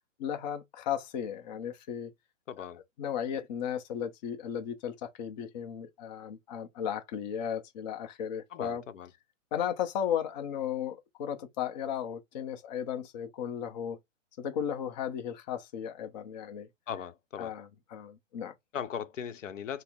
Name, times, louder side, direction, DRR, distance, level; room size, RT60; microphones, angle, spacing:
voice 1, 0.2-2.1 2.6-2.7 3.0-8.8 9.5-14.0 14.4-16.7 17.4-18.5, left 9 dB, 35° left, 0.6 m, -35 dB
voice 2, 2.5-2.8 8.5-9.1 16.9-17.5 18.7-19.8, left 8 dB, 80° left, 0.8 m, -38 dB
4.3 x 2.0 x 3.5 m
hypercardioid pair, 145°, 38 cm